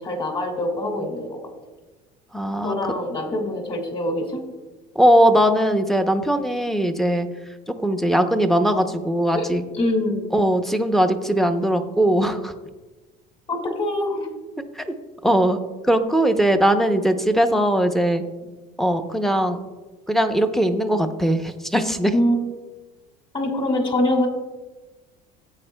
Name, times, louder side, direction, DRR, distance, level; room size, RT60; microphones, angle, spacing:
voice 1, 0.0-1.4 2.6-4.4 9.3-9.5 9.7-10.3 13.5-14.3 22.1-22.4 23.3-24.3, left 1 dB, 30° left, 3 dB, 2.0 m, -24 dB
voice 2, 2.3-2.8 5.0-7.3 7.7-9.6 10.3-12.5 14.8-14.9 15.2-15.6 15.8-18.2 18.8-19.6 20.1-22.1, right 1 dB, ahead, 7 dB, 0.6 m, -20 dB
15.5 x 8.5 x 2.2 m, 1.2 s
cardioid pair, 130°, 19 cm